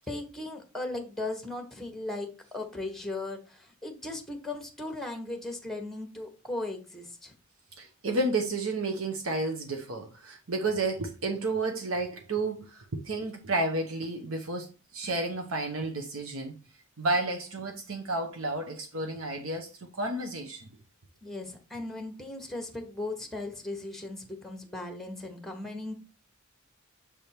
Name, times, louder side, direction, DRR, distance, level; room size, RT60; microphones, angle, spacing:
voice 1, 0.1-7.3 21.2-25.9, left 2 dB, ahead, 1.1 m, -37 dB
voice 2, 7.8-14.7 14.9-16.5 17.0-19.7 20.0-20.7, right 2 dB, 70° right, 1.0 m, -31 dB
6.9 x 3.5 x 4.3 m
head